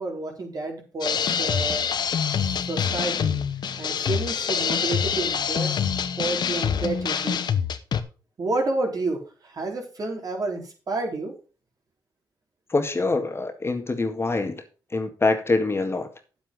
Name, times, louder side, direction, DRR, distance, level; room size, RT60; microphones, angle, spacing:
voice 1, 0.0-1.8 2.3-3.4 3.8-5.7 6.2-7.4 8.4-11.3, right 3 dB, 50° right, 1 dB, 4.1 m, -30 dB
sound 1, 1.0-8.0, left 7 dB, 65° left, 0.9 m, -25 dB
voice 2, 12.7-14.6 14.9-16.1, left 3 dB, 35° left, 6 dB, 1.9 m, -24 dB
8.6 x 8.0 x 5.3 m, 0.34 s
cardioid pair, 60°, 8 cm